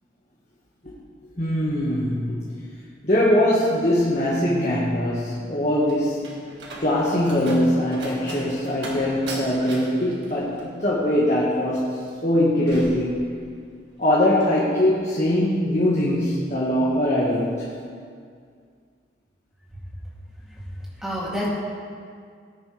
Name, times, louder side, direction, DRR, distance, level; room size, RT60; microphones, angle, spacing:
voice 1, 1.4-2.4 3.0-6.2 6.8-11.8 12.2-13.2 14.0-17.6, left 1 dB, 40° left, -6 dB, 1.6 m, -21 dB
Slam, 5.4-13.8 14.1-14.6, right 1 dB, 80° right, 1.9 m, -39 dB
voice 2, 20.4-21.5, equal, 5° right, -7 dB, 2.7 m, -30 dB
17.0 x 10.0 x 3.4 m, 2.2 s
head